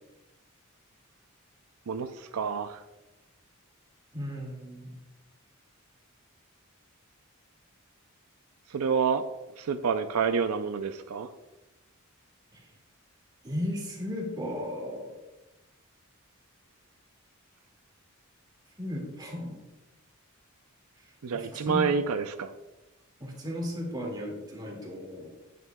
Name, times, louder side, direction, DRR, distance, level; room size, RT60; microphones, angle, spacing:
voice 1, 1.9-2.8 8.7-9.3 9.6-11.3 21.2-22.5, right 6 dB, 85° right, 9 dB, 0.5 m, -28 dB
voice 2, 4.1-4.9 12.5-12.6 13.4-15.1 18.8-19.6 21.0-21.1 21.3-21.9 23.2-25.3, left 1 dB, 20° right, -1 dB, 2.1 m, -35 dB
10.5 x 9.5 x 2.3 m, 1.0 s
head